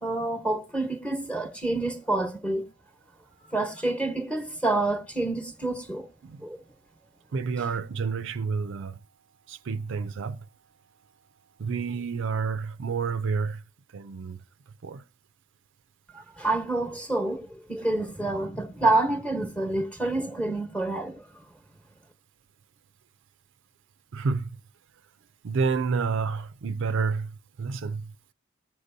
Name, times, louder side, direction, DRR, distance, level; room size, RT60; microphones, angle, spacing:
voice 1, 0.0-2.7 3.5-6.1 6.4-6.6 7.6-7.7 16.1-21.2, right 2 dB, 5° left, 1.1 m, -28 dB
voice 2, 7.3-8.9 9.5-10.4 11.6-13.6 13.9-14.4 14.8-15.0 24.1-24.5 25.4-28.1, right 5 dB, 65° right, 0.5 m, -29 dB
19.5 x 6.6 x 2.7 m
head